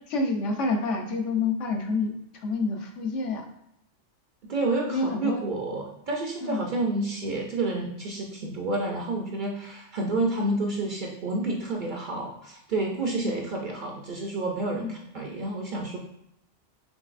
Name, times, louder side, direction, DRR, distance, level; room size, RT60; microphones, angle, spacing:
voice 1, 0.1-2.1 2.4-3.4 4.9-5.4 6.4-6.6 13.2-13.3 14.7-14.9, left 3 dB, 80° left, 3 dB, 1.1 m, -28 dB
voice 2, 4.4-16.0, right 2 dB, 55° right, 0 dB, 0.6 m, -29 dB
5.2 x 3.2 x 2.5 m, 0.81 s
omnidirectional pair, 1.2 m